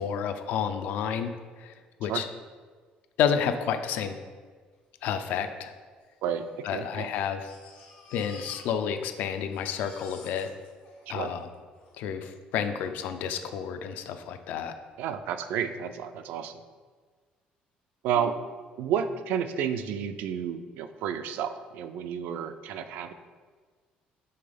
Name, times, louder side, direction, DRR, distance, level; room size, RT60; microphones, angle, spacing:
voice 1, 0.0-1.3 1.6-1.7 2.0-2.3 3.2-4.2 5.0-5.7 6.6-7.5 8.1-10.5 11.1-11.5 12.0-14.7, left 8 dB, 65° left, 8 dB, 0.5 m, -30 dB
Crying sobbing, 5.1-5.2 5.4-5.5 6.2-9.1 9.4-12.0 12.8-12.9 13.2-13.3, left 4 dB, 90° left, 1.3 m, -51 dB
voice 2, 6.2-7.1 11.1-11.3 15.0-16.6 18.0-18.5 18.8-23.1, right 8 dB, 75° right, 9 dB, 0.4 m, -31 dB
5.6 x 3.9 x 5.0 m, 1.5 s
cardioid pair, 165°, 3 cm